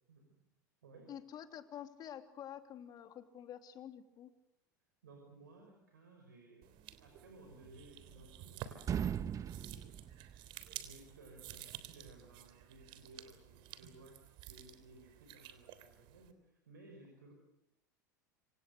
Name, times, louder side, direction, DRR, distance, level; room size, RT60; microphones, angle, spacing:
voice 1, 1.1-4.3, left 10 dB, 40° left, 7 dB, 3.1 m, -49 dB
voice 2, 5.0-6.7 7.0-9.2 9.5-10.1 10.7-17.3, right 2 dB, 80° right, 3 dB, 5.9 m, -59 dB
sound 1, 6.6-16.3, right 12 dB, 55° right, 3.5 m, -52 dB
sound 2, 7.6-8.5 8.8-10.9, right 9 dB, 35° right, 1.3 m, -39 dB
27.0 x 26.5 x 6.8 m, 0.84 s
hypercardioid pair, 85°, 10 cm